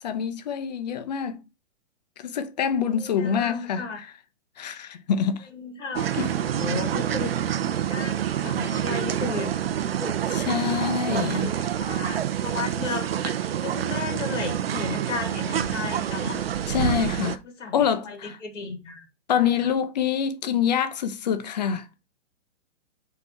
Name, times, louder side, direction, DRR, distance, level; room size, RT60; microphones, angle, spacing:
voice 1, 0.0-1.4 2.2-3.9 4.6-5.5 6.1-6.3 10.3-11.5 16.7-17.4 17.7-18.4 19.3-21.9, left 8 dB, 35° left, 0.9 m, -26 dB
voice 2, 2.9-4.0 5.5-6.1 6.5-7.3 7.9-8.1 8.4-9.5 9.8-10.2 11.0-16.4 17.6-19.0 19.3-19.7, left 4 dB, 80° left, 3.4 m, -34 dB
sound 1, 5.9-17.4, right 10 dB, 55° right, 0.8 m, -27 dB
6.1 x 4.6 x 5.6 m
hypercardioid pair, 175°, 36 cm